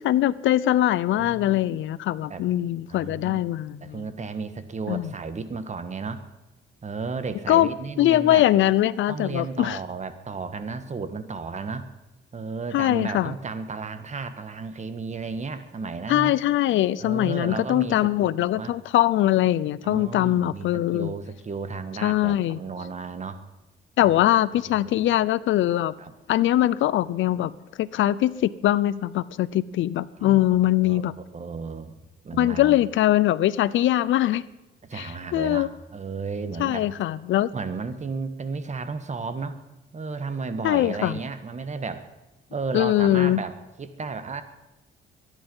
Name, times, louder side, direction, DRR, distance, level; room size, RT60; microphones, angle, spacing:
voice 1, 0.0-4.0 4.9-5.1 7.5-7.7 8.0-9.8 12.7-13.3 16.1-21.1 22.0-22.6 24.0-25.9 26.3-27.5 27.8-31.1 32.3-34.5 34.9-35.7 36.6-37.5 40.6-41.2 42.7-43.4, left 13 dB, 75° left, 18 dB, 0.6 m, -22 dB
voice 2, 1.2-1.7 2.3-2.4 2.9-3.5 3.8-6.2 6.8-8.4 9.1-11.9 12.3-16.3 17.0-18.7 19.8-23.4 24.0-24.1 24.8-24.9 26.0-26.1 30.2-30.5 30.8-31.9 32.2-32.7 34.8-36.9 37.5-39.6 39.9-42.1 42.5-44.4, right 4 dB, 35° right, 11 dB, 1.7 m, -33 dB
23.0 x 10.0 x 5.5 m, 1.0 s
cardioid pair, 90°, 20 cm